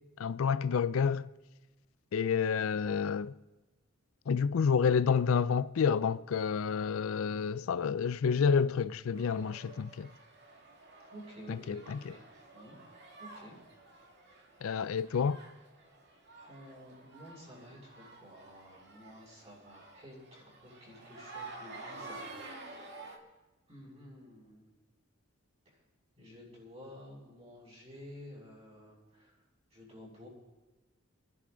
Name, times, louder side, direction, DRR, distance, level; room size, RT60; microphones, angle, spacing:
voice 1, 0.2-1.3 2.1-3.3 4.3-10.1 11.5-12.1 14.6-15.4, left 6 dB, 70° left, 0.4 m, -29 dB
sound 1, 9.1-23.2, right 3 dB, 55° right, 2.1 m, -51 dB
voice 2, 11.1-12.2 12.5-12.8 13.2-13.6 16.4-22.9 23.7-24.7 25.7-25.8 26.2-29.4 29.7-30.3, equal, 30° right, 7.2 m, -52 dB
27.5 x 11.0 x 3.9 m
head